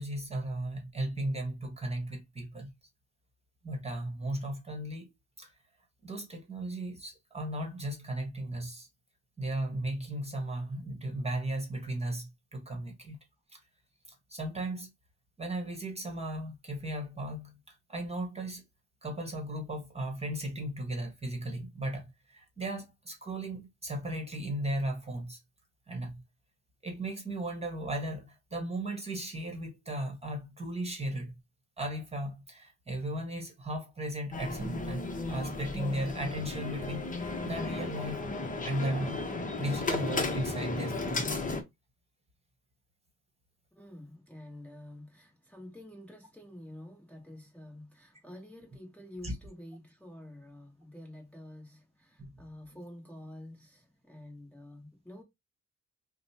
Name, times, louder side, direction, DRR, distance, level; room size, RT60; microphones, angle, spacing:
voice 1, 0.0-2.7 3.6-5.1 5.4-5.5 6.0-8.9 9.4-13.2 13.5-13.6 14.3-14.9 15.4-18.6 19.0-25.4 25.9-26.2 26.8-31.3 31.8-38.2 38.6-39.2 39.6-41.3 49.2-49.3 52.2-52.3, right 1 dB, 20° right, 1.4 m, -36 dB
sound 1, 34.3-41.6, left 3 dB, 25° left, 0.9 m, -34 dB
voice 2, 43.7-55.2, left 1 dB, 5° left, 1.3 m, -48 dB
5.0 x 2.2 x 2.8 m
cardioid pair, 90°, 30 cm